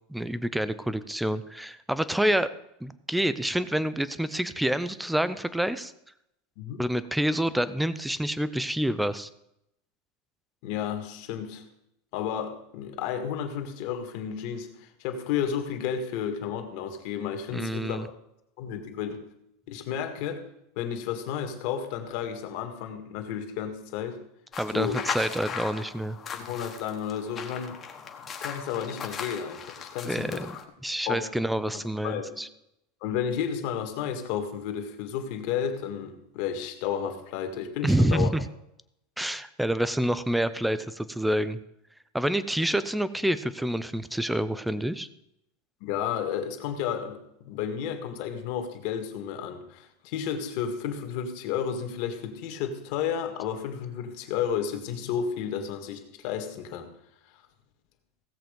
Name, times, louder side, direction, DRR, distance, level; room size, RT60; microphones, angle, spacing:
voice 1, 0.1-2.5 2.8-5.9 6.8-9.3 17.5-18.1 24.6-26.2 30.0-30.5 30.8-32.5 37.8-38.5 39.2-41.6 42.1-45.1, right 1 dB, ahead, 15 dB, 0.5 m, -27 dB
voice 2, 10.6-11.6 12.1-18.0 18.6-19.2 19.7-20.4 20.8-24.2 24.7-25.0 26.3-27.8 28.4-30.5 31.1-31.3 31.7-32.4 33.0-38.3 45.8-56.9, left 8 dB, 45° left, 6 dB, 1.8 m, -32 dB
sound 1, 24.5-30.6, left 6 dB, 20° left, 1.2 m, -38 dB
16.5 x 7.7 x 5.2 m, 0.80 s
supercardioid pair, 175°, 0 cm